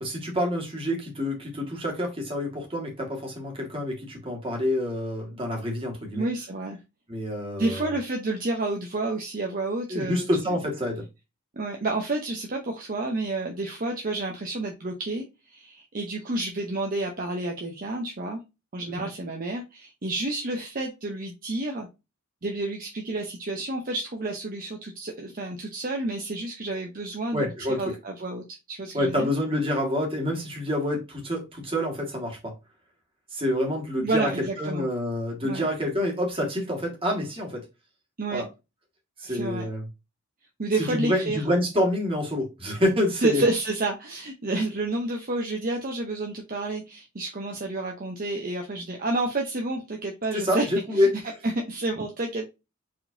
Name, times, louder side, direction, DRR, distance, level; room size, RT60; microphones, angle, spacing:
voice 1, 0.0-6.3 7.1-7.9 9.9-11.0 27.3-27.8 28.9-32.5 33.3-37.6 38.3-38.4 39.2-39.9 40.8-43.4 50.3-51.1, left 1 dB, 25° right, 1.8 m, -27 dB
voice 2, 6.1-6.8 7.6-10.6 11.6-15.2 15.5-18.4 18.7-21.9 22.4-27.5 27.8-29.3 34.0-34.9 35.4-35.6 38.2-38.5 39.3-39.7 40.6-41.4 43.2-50.7 50.9-51.1 51.4-52.4, right 2 dB, 45° right, 0.8 m, -30 dB
4.8 x 3.7 x 2.7 m
head